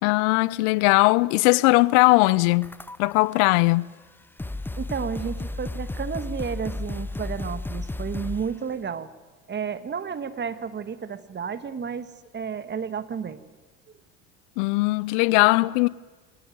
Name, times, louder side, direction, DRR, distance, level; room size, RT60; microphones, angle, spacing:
voice 1, 0.0-2.7 3.0-3.9 14.6-15.9, left 23 dB, 70° left, 0.7 m, -19 dB
sound 1, 2.6-3.3 4.0-4.1 4.4-8.6, left 2 dB, 5° left, 0.7 m, -33 dB
voice 2, 4.8-9.1 9.5-13.4, right 6 dB, 30° right, 1.7 m, -32 dB
23.0 x 19.0 x 9.3 m
hypercardioid pair, 80°, 36 cm